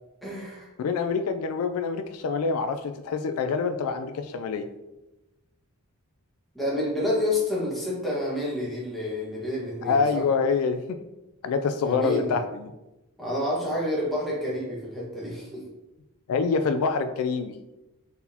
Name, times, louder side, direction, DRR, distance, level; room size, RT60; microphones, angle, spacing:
voice 1, 0.2-0.7 6.5-10.3 11.8-12.4 13.2-15.6, left 1 dB, ahead, -6 dB, 1.2 m, -29 dB
voice 2, 0.8-4.7 9.8-11.0 11.4-12.7 16.3-17.5, left 5 dB, 75° left, 8 dB, 0.3 m, -26 dB
4.1 x 4.0 x 2.8 m, 1.0 s
head